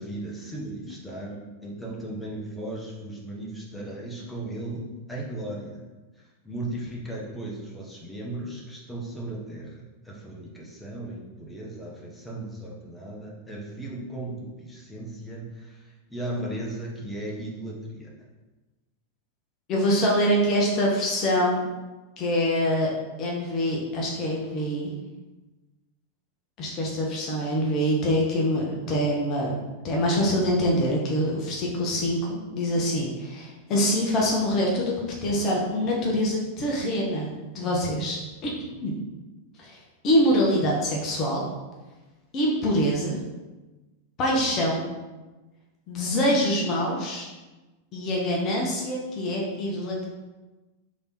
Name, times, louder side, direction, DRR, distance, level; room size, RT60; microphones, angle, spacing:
voice 1, 0.0-4.8 5.1-5.8 6.4-18.1, right 1 dB, 5° left, -4 dB, 0.9 m, -36 dB
voice 2, 19.7-21.7 22.2-22.9 23.2-24.9 26.6-29.6 29.8-34.9 35.2-37.3 37.5-38.2 38.4-38.9 39.6-39.8 40.0-41.5 42.3-43.2 44.2-44.9 45.9-47.3 47.9-50.0, equal, 35° left, -2 dB, 0.8 m, -25 dB
3.4 x 3.0 x 4.2 m, 1.2 s
figure-of-eight pair, 90°, 0 cm